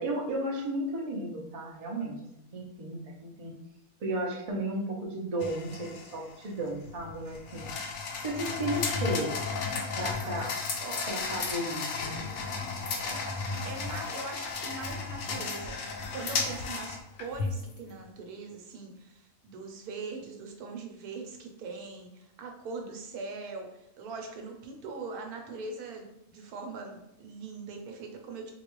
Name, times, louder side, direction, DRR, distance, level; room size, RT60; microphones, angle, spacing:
voice 1, 0.0-3.5 4.0-7.7 8.2-9.3 9.9-10.6 11.1-12.2, right 1 dB, 45° right, -2 dB, 0.5 m, -34 dB
sound 1, 5.4-17.8, left 4 dB, 65° left, 0.7 m, -34 dB
voice 2, 13.6-15.8 16.1-28.5, right 4 dB, 85° right, 3 dB, 1.2 m, -41 dB
3.9 x 2.3 x 3.0 m, 0.86 s
omnidirectional pair, 1.6 m